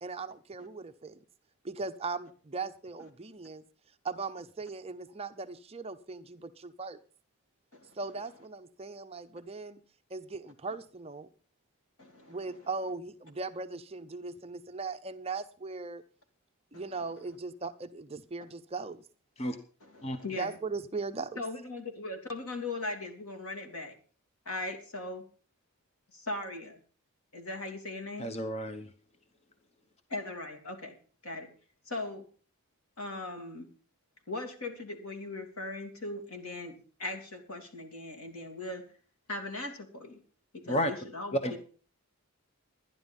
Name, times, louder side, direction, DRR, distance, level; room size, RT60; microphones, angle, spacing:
voice 1, 0.0-1.2 1.6-3.6 4.0-7.0 7.9-9.8 10.1-11.3 12.3-16.0 16.7-19.0 20.4-21.4, right 4 dB, 25° right, 9 dB, 0.7 m, -38 dB
voice 2, 12.0-12.4 16.7-16.9 19.8-20.5 21.4-23.9 24.4-25.2 26.1-26.8 27.3-28.3 30.1-31.0 31.2-31.5 31.9-32.2 33.0-33.7 34.3-38.8 39.3-40.2 40.5-41.6, left 2 dB, 75° left, 5 dB, 2.9 m, -39 dB
voice 3, 28.2-28.9 40.7-40.9 41.3-41.6, equal, 30° left, 8 dB, 0.9 m, -31 dB
13.0 x 10.5 x 5.4 m, 0.40 s
head